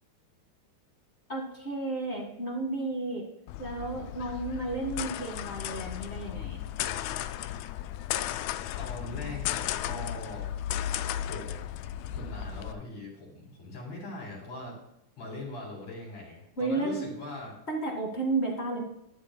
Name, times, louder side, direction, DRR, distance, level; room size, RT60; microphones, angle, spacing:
voice 1, 1.3-3.3 3.6-6.6 16.6-17.0 17.7-18.8, right 3 dB, 25° left, 0 dB, 1.7 m, -32 dB
sound 1, 3.5-12.7, left 11 dB, 80° left, 1.7 m, -35 dB
voice 2, 8.8-10.5 11.2-11.6 12.1-14.8 15.2-17.6, left 2 dB, 65° left, -3 dB, 4.7 m, -41 dB
13.5 x 10.5 x 2.2 m, 0.81 s
omnidirectional pair, 3.3 m